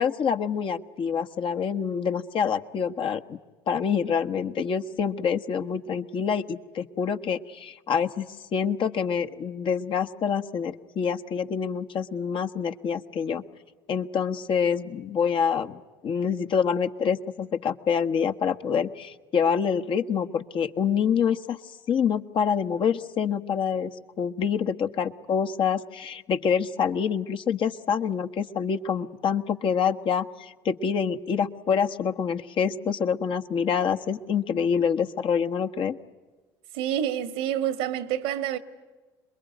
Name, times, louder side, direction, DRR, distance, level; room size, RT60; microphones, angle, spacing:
voice 1, 0.0-3.4 3.7-13.4 13.9-21.6 21.9-23.9 24.2-36.0, left 7 dB, 50° left, 1.3 m, -26 dB
voice 2, 36.7-38.6, right 10 dB, 75° right, 1.6 m, -28 dB
27.5 x 22.0 x 9.2 m
hypercardioid pair, 60°, 11 cm